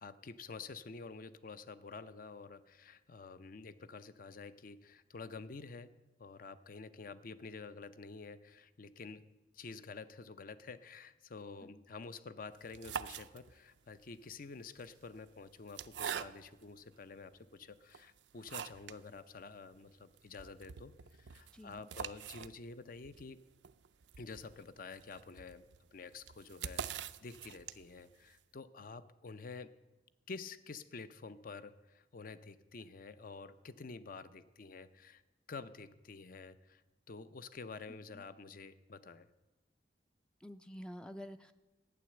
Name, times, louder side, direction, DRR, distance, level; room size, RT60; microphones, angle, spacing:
voice 1, 0.0-5.9 6.2-9.3 9.5-23.4 24.2-25.6 25.9-29.7 30.3-35.2 35.5-36.8 37.1-39.3, left 4 dB, 55° left, 14 dB, 0.6 m, -49 dB
sound 1, 12.6-13.8 14.6-16.7 17.3-17.4 17.9-19.0 19.4-19.5 19.7-19.8 20.2-28.1, right 8 dB, 85° right, 0.5 m, -45 dB
voice 2, 21.5-21.8 38.1-38.2 40.4-41.5, equal, 5° left, 9 dB, 0.4 m, -49 dB
12.0 x 9.4 x 7.7 m, 1.1 s
head